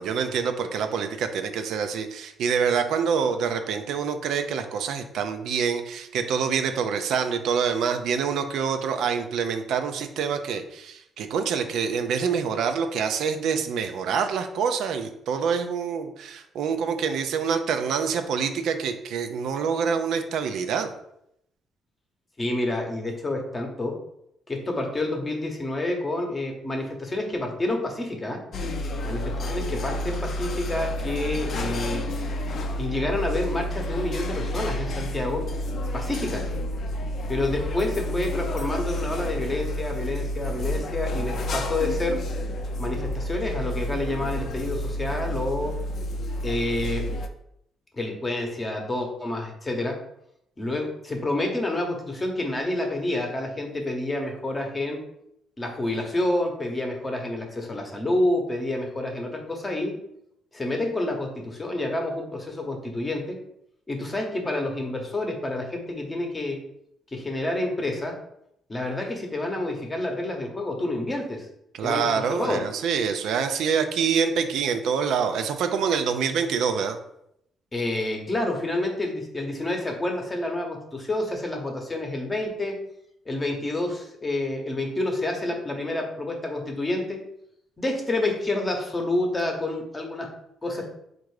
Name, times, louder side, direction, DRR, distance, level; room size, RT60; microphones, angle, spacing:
voice 1, 0.0-20.9 71.7-77.0, right 6 dB, 70° right, 7 dB, 0.4 m, -26 dB
voice 2, 22.4-23.9 24.5-28.4 29.0-32.0 32.8-35.4 35.9-36.5 37.3-42.2 42.8-45.7 46.4-47.0 47.9-49.9 50.6-55.0 55.6-59.9 60.5-63.4 63.9-66.6 67.1-68.1 68.7-71.5 71.8-72.6 77.7-82.8 83.3-87.2 87.8-90.3 90.6-90.9, left 2 dB, 20° left, 2 dB, 0.8 m, -28 dB
sound 1, 28.5-47.3, left 1 dB, 50° left, 0.4 m, -30 dB
4.3 x 2.5 x 4.7 m, 0.76 s
cardioid pair, 140°, 0 cm